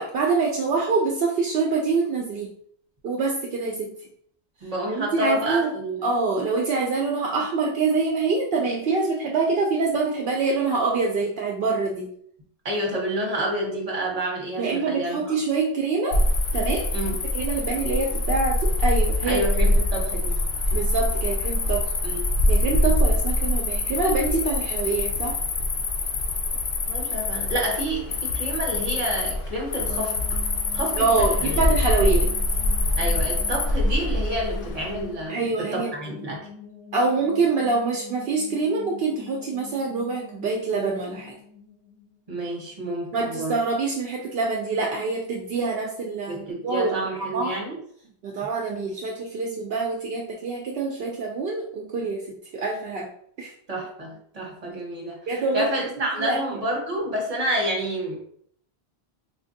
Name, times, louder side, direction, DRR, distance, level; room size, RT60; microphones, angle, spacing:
voice 1, 0.0-2.5 3.0-3.9 4.9-5.7 6.0-12.1 14.6-16.2 16.5-16.9 17.3-19.4 20.7-21.9 22.5-25.4 31.0-32.3 35.3-35.9 36.9-41.3 43.1-47.6 48.2-53.1 53.4-53.5 55.3-55.7 56.0-56.4, right 4 dB, 70° right, -1 dB, 0.7 m, -25 dB
voice 2, 4.6-6.1 12.6-15.3 16.9-17.1 19.3-20.4 22.0-22.2 26.9-30.1 30.7-31.6 33.0-36.4 42.3-43.5 46.3-47.8 53.7-58.2, right 1 dB, 40° right, -2 dB, 1.1 m, -29 dB
Cricket, 16.1-35.0, left 2 dB, 65° left, 0.7 m, -24 dB
sound 1, 29.9-42.8, left 6 dB, 15° left, 0.4 m, -45 dB
3.9 x 2.5 x 2.6 m, 0.64 s
omnidirectional pair, 1.0 m